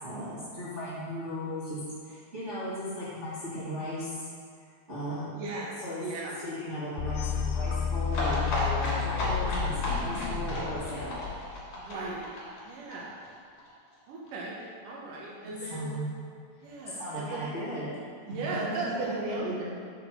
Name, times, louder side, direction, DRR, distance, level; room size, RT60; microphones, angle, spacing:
voice 1, 0.0-4.2 4.9-5.4 5.8-6.0 6.4-11.2 15.3-15.4 15.7-16.0 17.0-17.9 18.3-19.5, equal, 50° right, -13 dB, 0.8 m, -36 dB
voice 2, 5.3-6.4 11.8-12.2 12.6-13.2 14.1-14.6 14.8-16.0 16.6-17.5 18.2-19.6, right 2 dB, 70° right, -4 dB, 2.1 m, -36 dB
sound 1, 7.0-11.9, left 6 dB, 85° left, 2.8 m, -31 dB
sound 2, 8.1-13.7 13.9-14.0 14.3-14.4 14.6-14.7, left 1 dB, 50° left, 3.2 m, -33 dB
7.2 x 6.1 x 4.5 m, 2.2 s
omnidirectional pair, 5.0 m